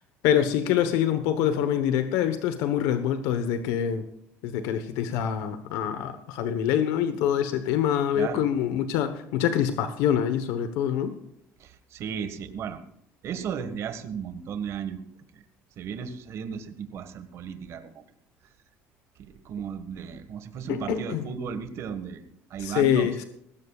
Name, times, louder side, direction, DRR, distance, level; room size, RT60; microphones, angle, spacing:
voice 1, 0.2-4.1 4.4-11.2 20.7-21.3 22.6-23.2, left 9 dB, 85° left, 9 dB, 1.2 m, -25 dB
voice 2, 11.6-12.8 13.2-15.0 15.8-17.9 19.2-22.2 22.5-23.1, right 7 dB, 55° right, 9 dB, 1.7 m, -35 dB
19.5 x 16.0 x 2.4 m, 0.76 s
cardioid pair, 115°, 6 cm